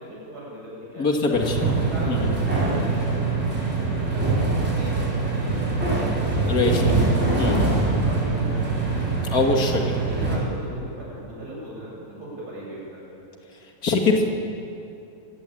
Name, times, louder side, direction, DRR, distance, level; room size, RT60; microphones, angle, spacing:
voice 1, 0.0-1.1 1.7-5.6 5.9-6.8 7.1-9.6 10.0-13.3, right 1 dB, 85° right, -5 dB, 8.6 m, -38 dB
voice 2, 1.0-1.6 2.0-2.3 6.5-7.0 7.4-7.6 9.3-10.0 13.8-14.3, left 3 dB, 65° left, 1 dB, 2.8 m, -22 dB
sound 1, 1.3-10.4, right 3 dB, 40° right, 5.9 m, -23 dB
26.5 x 19.5 x 8.7 m, 2.7 s
omnidirectional pair, 1.7 m